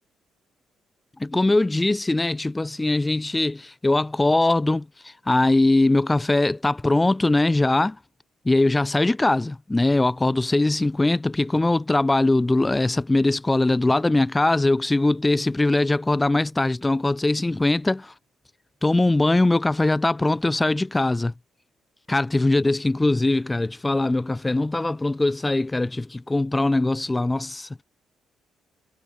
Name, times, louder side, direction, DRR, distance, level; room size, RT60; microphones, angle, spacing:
voice 1, 1.2-8.0 8.4-18.1 18.8-21.3 22.1-27.8, left 2 dB, 15° left, 0.8 m, -21 dB
cardioid pair, 90°, 0 cm